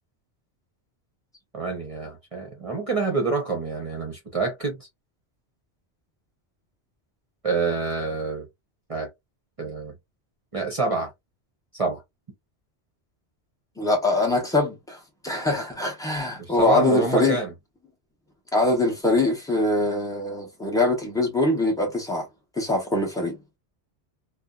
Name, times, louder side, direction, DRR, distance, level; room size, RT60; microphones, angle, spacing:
voice 1, 1.5-4.9 7.4-8.5 8.9-9.1 9.6-9.9 10.5-11.1 11.7-12.0 16.4-17.5, right 3 dB, 35° right, 0.8 m, -27 dB
voice 2, 13.8-15.0 15.2-17.4 18.5-22.3 22.6-23.4, left 2 dB, 5° left, 0.9 m, -23 dB
2.7 x 2.3 x 2.3 m
omnidirectional pair, 1.2 m